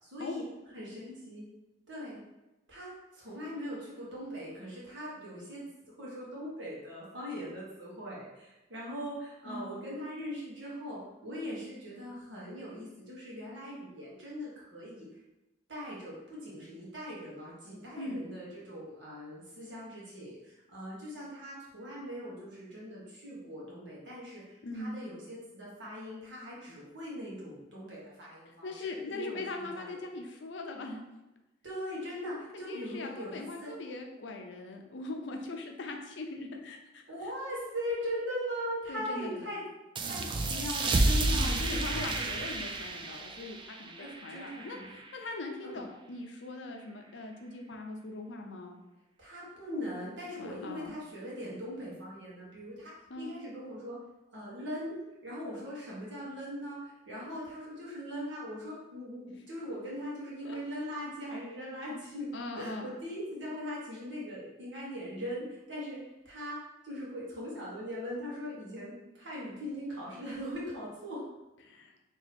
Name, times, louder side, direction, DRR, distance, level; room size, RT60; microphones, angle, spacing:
voice 1, 0.0-0.4 0.7-1.5 1.9-2.2 2.7-5.7 6.0-15.0 15.7-30.1 31.6-33.7 37.1-39.6 40.0-42.2 44.0-45.0 45.6-45.9 49.2-53.9 54.3-62.3 62.5-66.0 66.2-66.6 66.8-71.2, equal, 80° right, -6 dB, 1.4 m, -40 dB
voice 2, 24.6-25.0 28.5-31.1 32.5-37.0 38.9-39.5 41.3-48.8 50.4-50.9 53.1-53.3 60.4-60.6 62.3-62.9 71.6-71.9, left 2 dB, 70° left, 3 dB, 0.6 m, -41 dB
sound 1, 39.9-45.2, right 2 dB, 25° right, 0.3 m, -31 dB
3.0 x 2.8 x 4.1 m, 1.0 s
head